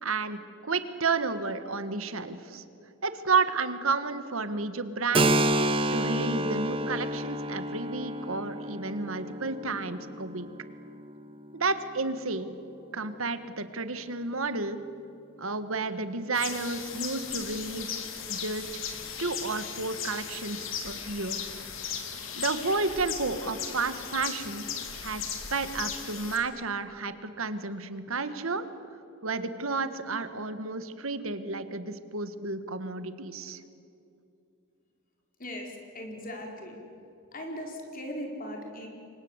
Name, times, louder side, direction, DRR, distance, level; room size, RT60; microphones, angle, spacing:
voice 1, 0.0-2.6 3.0-5.5 5.9-10.5 11.5-12.5 12.9-14.8 15.4-17.9 18.3-18.7 19.2-21.4 22.4-24.7 25.0-25.2 25.5-28.7 29.2-33.6, right 3 dB, 75° right, 11 dB, 1.6 m, -31 dB
Keyboard (musical), 5.1-12.5, right 1 dB, 25° right, 1.0 m, -30 dB
sound 1, 16.3-26.4, left 7 dB, 65° left, 3.0 m, -37 dB
voice 2, 35.4-36.8 37.3-38.9, equal, 40° left, 2 dB, 4.8 m, -38 dB
29.0 x 24.5 x 8.1 m, 2.7 s
head